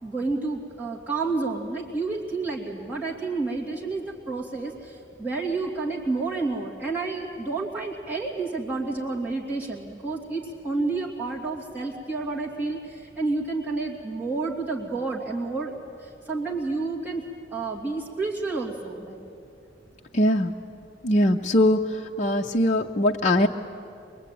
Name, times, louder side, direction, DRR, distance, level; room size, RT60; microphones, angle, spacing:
voice 1, 0.0-17.3 17.5-19.2 20.2-20.5, right 3 dB, 10° right, -5 dB, 2.7 m, -30 dB
voice 2, 20.1-20.5 21.0-21.8 22.2-23.5, left 1 dB, 40° left, 1 dB, 0.7 m, -21 dB
23.0 x 23.0 x 9.2 m, 2.5 s
head